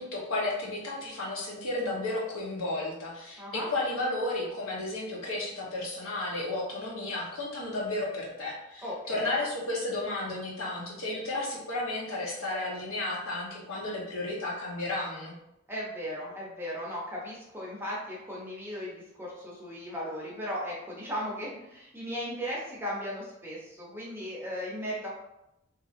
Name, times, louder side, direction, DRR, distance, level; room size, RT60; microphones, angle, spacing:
voice 1, 0.0-15.3, left 2 dB, 85° left, -4 dB, 0.9 m, -33 dB
voice 2, 3.4-3.7 8.8-9.3 15.7-25.2, equal, 10° right, -5 dB, 0.6 m, -37 dB
2.8 x 2.6 x 2.4 m, 0.86 s
head